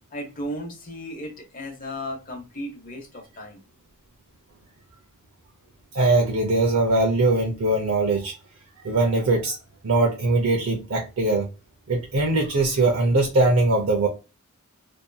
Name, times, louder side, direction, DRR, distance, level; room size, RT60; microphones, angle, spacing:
voice 1, 0.1-3.6, equal, 40° left, 0.9 m, -35 dB
voice 2, 5.9-8.3 8.8-9.6 9.8-11.5 11.9-14.1, right 2 dB, 70° right, 0.6 m, -21 dB
2.8 x 2.6 x 2.2 m
head